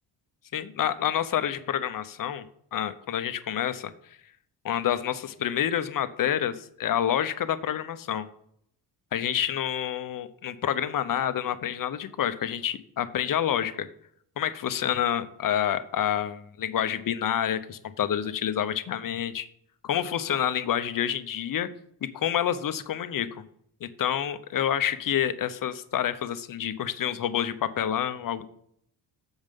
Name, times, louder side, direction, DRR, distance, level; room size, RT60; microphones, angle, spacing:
voice 1, 0.5-2.5 2.7-3.9 4.6-8.3 9.1-13.9 14.4-19.5 19.8-21.7 22.1-23.4 23.8-28.5, left 10 dB, 45° left, 12 dB, 0.8 m, -28 dB
7.1 x 5.3 x 5.3 m, 0.68 s
supercardioid pair, 55°, 46 cm